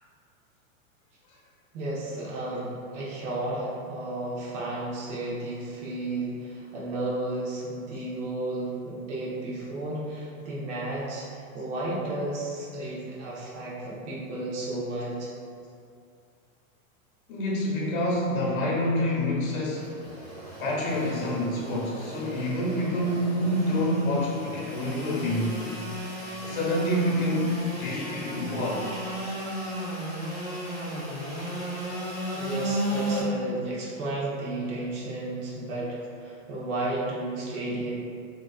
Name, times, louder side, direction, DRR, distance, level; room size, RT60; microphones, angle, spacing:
voice 1, 1.7-11.3 11.5-15.3 32.3-37.9, right 2 dB, 55° right, -6 dB, 0.9 m, -33 dB
voice 2, 17.3-20.0 20.6-25.6 26.4-28.9, left 1 dB, 75° left, -4 dB, 1.0 m, -27 dB
Engine / Sawing, 19.5-33.2, right 1 dB, 25° right, 1.1 m, -35 dB
2.9 x 2.4 x 2.3 m, 2.4 s
hypercardioid pair, 140°, 42 cm